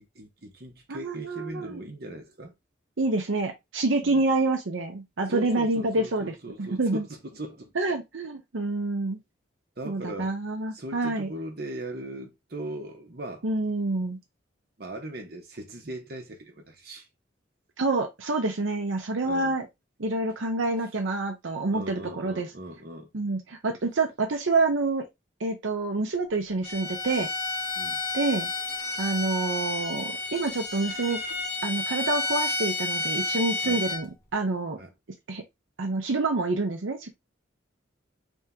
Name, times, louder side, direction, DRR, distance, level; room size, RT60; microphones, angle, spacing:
voice 1, 0.0-2.5 4.0-4.2 5.3-7.7 9.8-10.3 10.7-13.4 14.8-17.1 19.2-19.5 21.7-23.1 27.8-28.0 33.6-33.9 34.8-34.9, right 1 dB, 50° right, 1.1 m, -39 dB
voice 2, 0.9-1.8 3.0-7.0 7.7-9.2 9.8-11.3 13.4-14.2 17.8-19.7 20.0-22.5 23.1-25.1 25.4-27.3 28.1-28.5 29.0-31.2 31.6-34.8 35.3-35.4 35.8-37.1, right 3 dB, 85° right, 0.7 m, -27 dB
Bowed string instrument, 26.6-34.0, left 3 dB, 50° left, 1.2 m, -31 dB
3.5 x 2.8 x 3.6 m
head